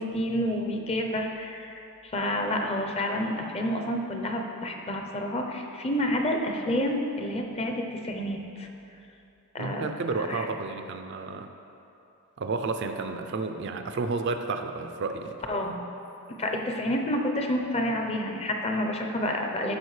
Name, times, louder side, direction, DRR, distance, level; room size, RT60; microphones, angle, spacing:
voice 1, 0.0-8.7 9.5-9.8 10.3-10.5 15.5-15.8 16.3-19.7, left 1 dB, 30° left, 3 dB, 0.6 m, -29 dB
voice 2, 9.6-11.5 12.4-15.4, right 3 dB, 55° right, 7 dB, 0.4 m, -31 dB
12.5 x 4.9 x 3.2 m, 2.8 s
head